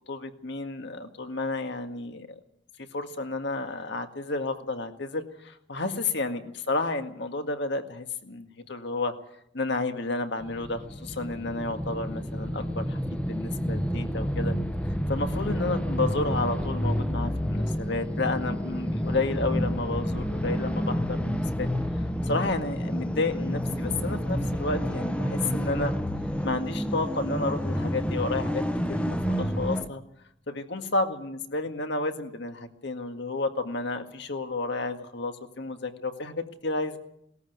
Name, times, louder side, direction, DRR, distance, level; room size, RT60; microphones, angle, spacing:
voice 1, 0.1-2.3 2.9-9.1 9.5-14.5 15.1-21.7 22.0-25.9 26.4-30.0 30.5-37.0, left 3 dB, 60° left, 7 dB, 1.9 m, -31 dB
sound 1, 10.4-29.9, equal, 5° left, 1.0 m, -29 dB
19.5 x 14.0 x 9.4 m, 0.75 s
head